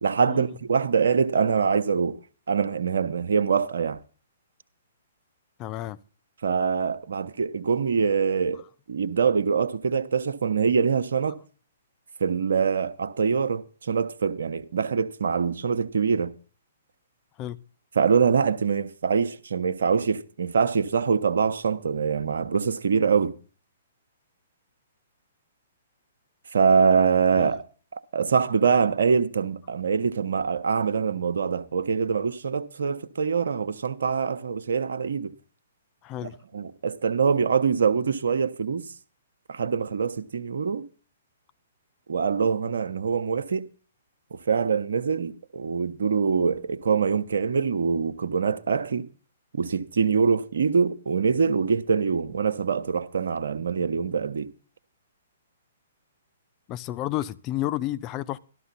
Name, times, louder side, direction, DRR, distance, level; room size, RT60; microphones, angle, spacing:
voice 1, 0.0-2.1 2.5-4.0 6.4-8.6 8.9-11.4 12.2-16.3 18.0-23.3 26.5-27.6 28.1-35.3 36.5-38.8 39.5-40.9 42.1-43.6 44.5-49.1 49.5-54.5, right 6 dB, 75° right, 1.0 m, -24 dB
voice 2, 5.6-6.0 8.5-8.6 17.4-17.6 27.4-27.5 36.0-36.4 56.7-58.4, left 14 dB, 30° left, 0.7 m, -31 dB
13.0 x 12.5 x 4.1 m
hypercardioid pair, 130°, 0 cm